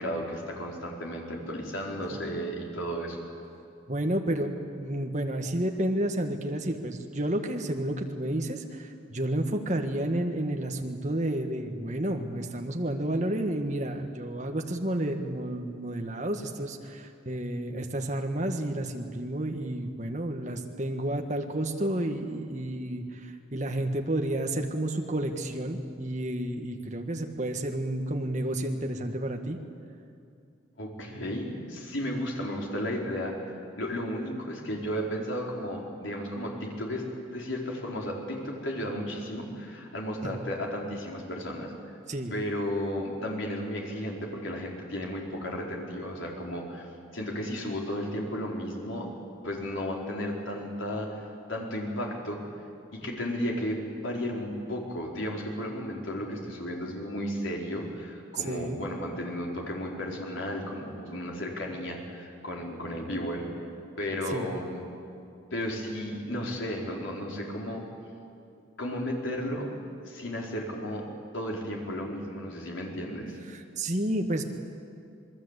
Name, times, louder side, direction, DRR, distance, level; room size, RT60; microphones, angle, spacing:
voice 1, 0.0-3.2 30.8-41.9 42.3-49.1 49.4-52.4 52.9-63.4 64.0-64.8 65.5-67.8 68.8-69.7 70.0-71.0 71.3-73.4, equal, 80° left, -1 dB, 4.5 m, -34 dB
voice 2, 3.9-29.6 40.2-40.3 42.1-42.3 58.4-58.8 64.3-64.5 73.5-74.4, right 1 dB, 35° right, 3 dB, 1.7 m, -31 dB
27.5 x 20.5 x 8.3 m, 2.5 s
head